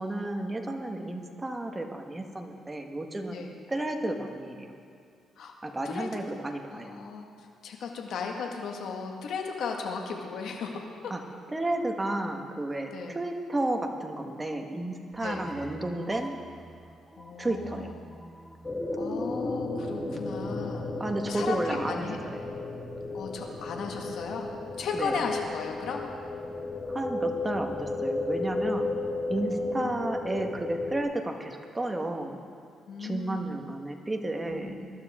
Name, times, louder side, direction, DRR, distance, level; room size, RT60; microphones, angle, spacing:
voice 1, 0.0-4.7 5.6-7.0 11.1-11.2 11.5-16.3 17.4-17.9 21.0-22.4 24.9-25.2 26.9-29.0 29.3-32.4 33.0-34.8, right 1 dB, 15° right, 3 dB, 1.5 m, -32 dB
voice 2, 6.7-11.1 12.9-13.2 15.2-15.5 17.2-17.9 19.0-20.8 21.2-22.5 23.1-24.5 24.8-26.0 29.3-29.9 32.9-33.5 34.5-34.9, left 5 dB, 70° left, 1 dB, 1.9 m, -36 dB
sound 1, 15.1-20.3, right 1 dB, ahead, 1.0 m, -48 dB
sound 2, 18.6-31.0, left 2 dB, 20° left, 2.0 m, -34 dB
22.5 x 12.5 x 3.7 m, 2.3 s
cardioid pair, 90°, 0 cm